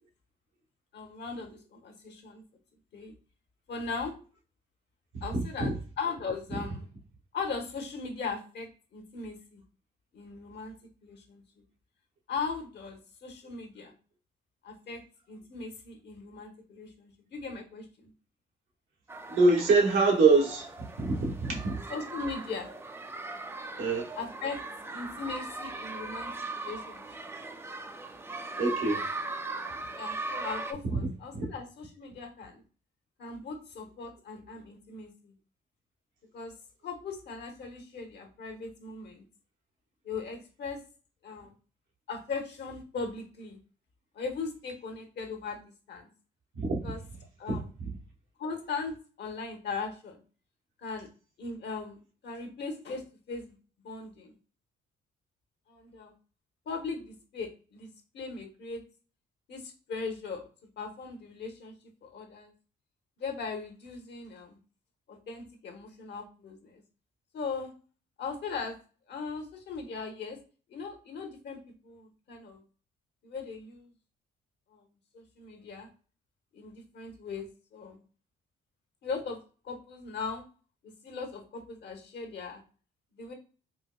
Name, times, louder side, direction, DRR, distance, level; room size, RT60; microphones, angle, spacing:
voice 1, 0.9-2.4 2.9-3.2 3.7-4.1 5.2-5.7 6.0-6.9 7.3-9.6 10.1-10.7 11.0-11.4 12.3-13.9 14.6-15.0 15.3-18.1 21.9-22.7 24.1-24.6 24.9-27.1 29.9-32.6 33.2-35.3 36.3-36.5 36.8-39.3 40.0-40.8 41.2-41.5 42.1-43.6 44.1-46.1 46.8-47.0 47.4-47.7 48.4-50.2 50.8-51.1 51.4-53.5 53.8-54.3 55.7-56.1 56.7-57.9 58.1-58.8 59.5-60.5 60.8-61.7 62.0-62.5 63.2-64.6 65.1-66.8 67.3-67.7 68.2-68.8 69.1-70.4 70.7-72.6 73.2-73.9 74.7-74.8 75.1-75.9 76.5-78.0 79.0-79.4 79.6-80.4 81.0-82.6 83.1-83.3, left 4 dB, 60° left, 0.9 m, -39 dB
voice 2, 5.1-5.7 19.3-21.8 23.8-24.1 28.5-29.1 30.8-31.1 31.3-31.5 46.5-46.8 47.5-47.6, right 3 dB, 85° right, 1.1 m, -25 dB
sound 1, 19.1-30.7, right 3 dB, 10° right, 0.3 m, -39 dB
4.3 x 2.1 x 2.2 m
cardioid pair, 90°, 20 cm